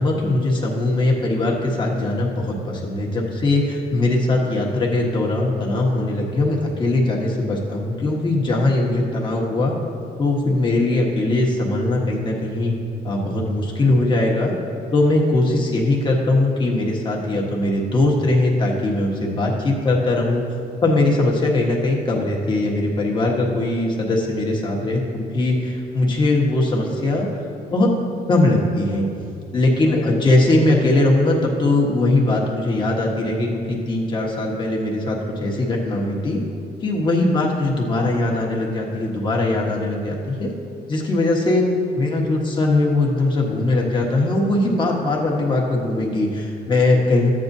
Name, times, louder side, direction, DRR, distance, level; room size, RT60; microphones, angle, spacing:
voice 1, 0.0-9.7 10.2-12.7 13.0-14.5 14.9-20.4 20.8-27.3 27.7-27.9 28.3-29.1 29.5-36.4 36.8-40.5 40.9-41.6 42.0-47.4, left 2 dB, 25° left, -2 dB, 1.3 m, -20 dB
14.0 x 8.6 x 2.7 m, 2.5 s
cardioid pair, 165°, 18 cm